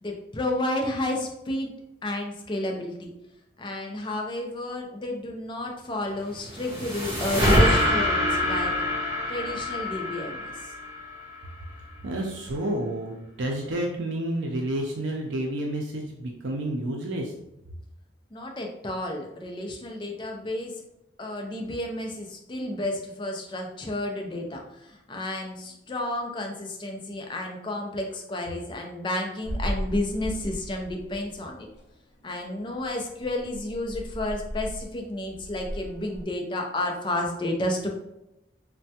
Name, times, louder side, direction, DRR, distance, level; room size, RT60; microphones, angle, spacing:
voice 1, 0.0-1.7 2.0-3.1 3.6-8.7 9.3-10.5 18.3-20.7 21.2-31.7 32.2-37.9, left 1 dB, 25° left, 2 dB, 0.4 m, -31 dB
sound 1, 6.2-11.6, left 1 dB, 30° right, 1.1 m, -25 dB
voice 2, 12.0-17.3, right 1 dB, 90° right, 0 dB, 0.5 m, -30 dB
sound 2, 29.4-31.4 31.7-31.8 32.4-32.5 32.7-32.9 33.2-36.2, equal, 75° left, 0.7 m, -35 dB
3.2 x 2.2 x 2.7 m, 0.89 s
head